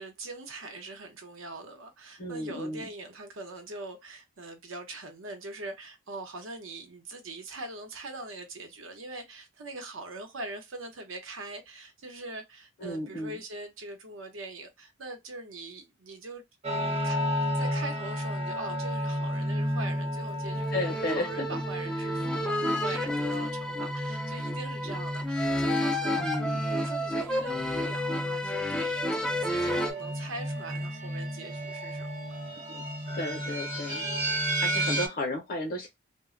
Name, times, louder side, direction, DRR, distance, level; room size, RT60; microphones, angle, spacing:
voice 1, 0.0-17.2 17.5-32.1 34.7-35.0, right 2 dB, 80° right, 0.8 m, -42 dB
voice 2, 2.2-2.9 12.8-13.4 20.7-21.5 26.2-26.6 32.7-32.8 33.1-34.1 34.6-35.9, left 2 dB, 45° left, 0.6 m, -33 dB
sound 1, 16.6-35.1, equal, 30° right, 0.7 m, -33 dB
sound 2, 20.4-29.9, left 1 dB, 5° left, 0.3 m, -31 dB
2.1 x 2.1 x 3.6 m
head